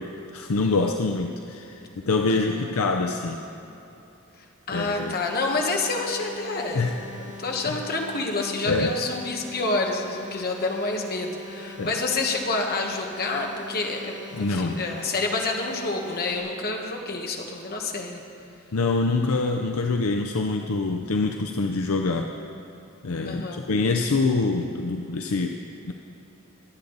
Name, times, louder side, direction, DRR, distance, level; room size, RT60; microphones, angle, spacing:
voice 1, 0.0-3.4 4.7-5.2 6.7-7.0 7.7-7.8 8.7-8.9 11.8-11.9 14.3-14.8 18.7-22.3 23.0-25.9, left 3 dB, 70° left, 3 dB, 0.6 m, -25 dB
voice 2, 2.3-2.8 4.7-6.9 7.4-18.2 23.3-23.6, left 3 dB, 45° left, 1 dB, 1.4 m, -28 dB
sound 1, 5.0-16.4, left 2 dB, 35° right, 2.6 m, -42 dB
22.5 x 8.4 x 4.0 m, 2.9 s
head